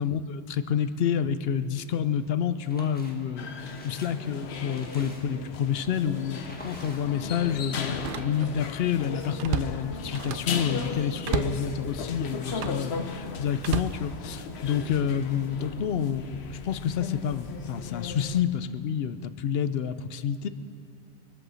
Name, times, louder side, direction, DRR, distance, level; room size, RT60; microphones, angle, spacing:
voice 1, 0.0-20.5, left 8 dB, 75° left, 12 dB, 0.8 m, -29 dB
sound 1, 2.6-3.2 3.6-5.5 6.3-7.3 7.6-8.7, left 1 dB, 10° left, 1.5 m, -48 dB
sound 2, 3.4-18.4, left 5 dB, 90° left, 1.1 m, -36 dB
Slam, 5.8-6.0 6.4-6.6 7.9-8.7 9.0-10.6 11.2-11.7 12.4-12.9 13.6-14.7 15.3-15.6, right 8 dB, 65° right, 0.7 m, -34 dB
23.0 x 7.8 x 6.3 m, 2.4 s
omnidirectional pair, 1.1 m